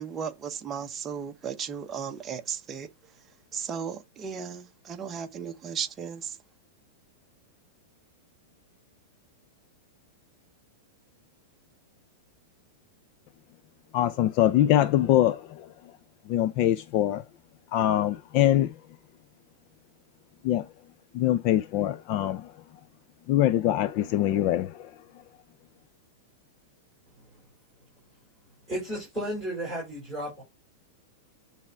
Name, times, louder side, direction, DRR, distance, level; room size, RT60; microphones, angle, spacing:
voice 1, 0.0-2.9 3.5-6.4, right 7 dB, 15° right, 0.9 m, -35 dB
voice 2, 13.9-15.4 16.3-17.2 17.7-18.7 20.4-20.6 21.1-22.5 23.3-24.9, left 12 dB, 35° left, 0.4 m, -23 dB
voice 3, 28.7-30.4, right 1 dB, 5° left, 4.9 m, -34 dB
9.6 x 3.5 x 4.4 m
supercardioid pair, 165°, 0 cm